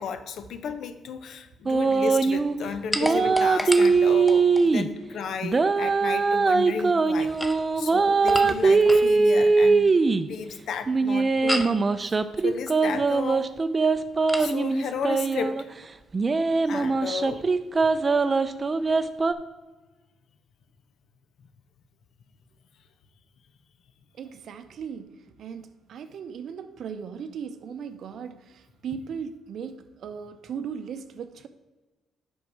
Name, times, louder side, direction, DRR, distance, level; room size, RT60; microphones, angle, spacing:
voice 1, 0.0-7.3 7.8-9.9 10.2-13.5 14.4-15.7 16.7-17.4, left 6 dB, 70° left, 0.6 m, -34 dB
sound 1, 1.7-2.6 3.0-4.9 5.4-10.3 10.9-15.6 16.1-19.3, right 4 dB, 30° right, 0.4 m, -21 dB
sound 2, 2.9-4.7 7.2-9.1 11.5-11.8 14.3-14.5, left 1 dB, 5° left, 0.6 m, -32 dB
voice 2, 24.2-31.5, right 7 dB, 65° right, 0.6 m, -37 dB
7.9 x 5.4 x 4.6 m
cardioid pair, 90°, 0 cm